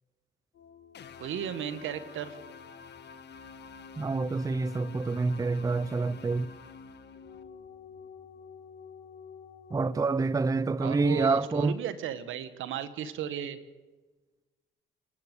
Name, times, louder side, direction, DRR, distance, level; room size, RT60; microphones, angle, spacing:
sound 1, 0.5-10.0, left 5 dB, 75° left, 2.9 m, -51 dB
sound 2, 0.9-7.4, left 6 dB, 60° left, 1.7 m, -50 dB
voice 1, 1.2-2.4 10.8-13.6, right 9 dB, 80° right, 1.8 m, -35 dB
voice 2, 4.0-6.5 9.7-11.8, right 3 dB, 15° right, 0.6 m, -27 dB
28.5 x 12.0 x 8.3 m
cardioid pair, 90°, 20 cm